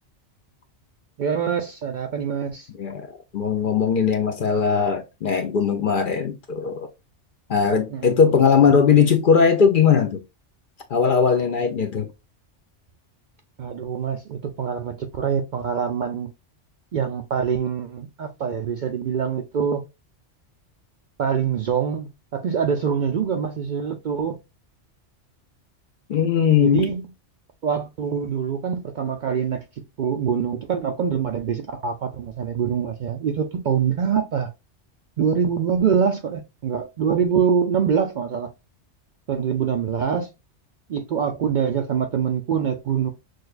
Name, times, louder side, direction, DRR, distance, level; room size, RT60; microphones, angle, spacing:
voice 1, 1.2-2.7 7.9-8.2 13.6-16.3 16.9-19.8 21.2-24.4 26.6-27.1 27.6-29.6 30.0-34.5 35.2-38.5 39.3-40.3 40.9-43.1, right 7 dB, 60° right, 0.5 m, -24 dB
voice 2, 3.3-6.9 7.5-10.2 10.9-12.1 26.1-26.9, left 6 dB, 55° left, 0.6 m, -19 dB
6.4 x 2.2 x 2.4 m
omnidirectional pair, 1.2 m